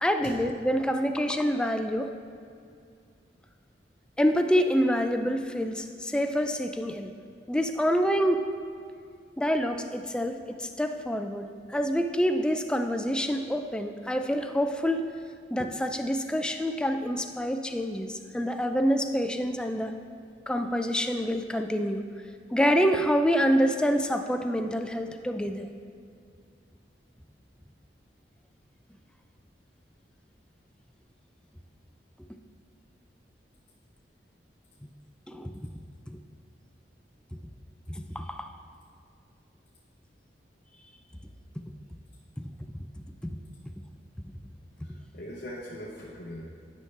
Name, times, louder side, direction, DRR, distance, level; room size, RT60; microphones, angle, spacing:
voice 1, 0.0-2.1 4.2-7.1 7.5-8.5 9.4-15.0 15.5-19.9 20.5-22.0 22.5-25.7 35.3-35.5 36.1-36.2 37.9-38.5 41.6-41.7 43.2-43.4 44.8-44.9, equal, 5° left, 6 dB, 0.3 m, -27 dB
voice 2, 44.8-46.4, equal, 55° left, -5 dB, 0.9 m, -41 dB
10.5 x 5.6 x 3.2 m, 2.3 s
head